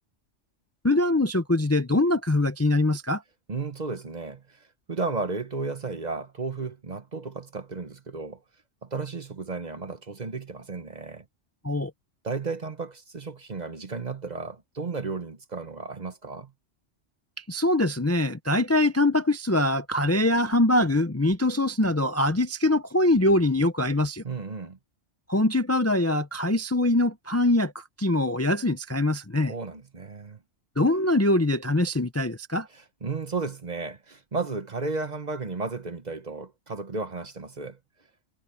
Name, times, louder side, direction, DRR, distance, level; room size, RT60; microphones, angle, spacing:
voice 1, 0.8-3.2 11.6-11.9 17.5-24.2 25.3-29.5 30.8-32.7, left 1 dB, 15° left, 0.6 m, -23 dB
voice 2, 3.5-8.4 8.8-11.2 12.2-16.5 24.2-24.8 29.5-30.4 32.7-37.8, right 4 dB, 35° right, 1.1 m, -34 dB
omnidirectional pair, 1.3 m